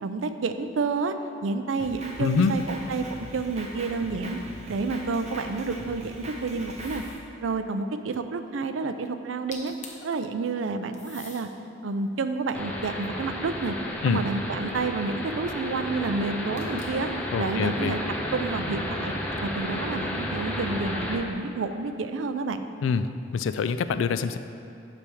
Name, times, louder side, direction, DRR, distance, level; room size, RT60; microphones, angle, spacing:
voice 1, 0.0-1.1 1.4-4.4 4.7-7.0 7.4-9.7 10.0-11.5 11.8-13.7 14.0-17.1 17.4-18.0 18.3-19.1 19.4-22.6, right 4 dB, 85° right, 9 dB, 0.4 m, -29 dB
Drum kit, 1.8-7.1, right 1 dB, 35° right, 1.0 m, -41 dB
voice 2, 2.2-2.5 14.0-14.2 17.3-17.9 22.8-24.4, left 5 dB, 85° left, 12 dB, 0.3 m, -25 dB
sound 1, 6.8-7.3 9.2-9.3 9.5-10.1 10.9-11.5 12.1-13.6 16.6-17.1, left 4 dB, 40° left, 0.9 m, -46 dB
sound 2, 12.5-21.2, left 1 dB, 10° left, 0.7 m, -32 dB
8.4 x 3.4 x 6.2 m, 2.9 s
head